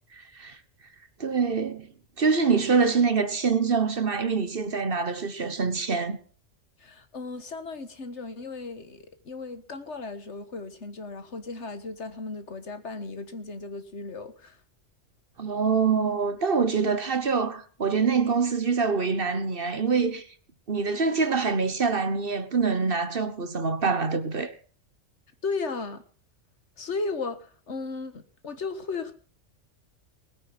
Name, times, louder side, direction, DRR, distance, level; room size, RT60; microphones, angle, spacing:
voice 1, 1.2-1.9 2.2-6.2 15.4-20.2 20.7-24.5, right 5 dB, 45° right, 1.3 m, -25 dB
voice 2, 6.8-14.6 25.4-26.0 26.8-29.1, left 3 dB, 60° left, 1.8 m, -35 dB
20.0 x 9.3 x 5.9 m
omnidirectional pair, 1.3 m